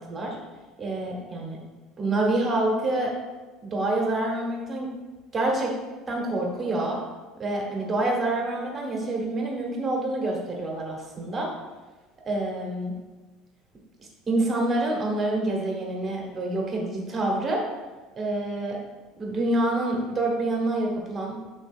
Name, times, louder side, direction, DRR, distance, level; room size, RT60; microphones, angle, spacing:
voice 1, 0.8-1.6 2.0-3.1 3.6-4.9 5.3-5.7 6.1-7.0 7.4-11.5 12.3-12.9 14.3-17.6 18.2-18.8 19.2-21.4, right 2 dB, 20° right, 0 dB, 1.1 m, -27 dB
5.8 x 3.9 x 4.4 m, 1.2 s
cardioid pair, 155°, 0 cm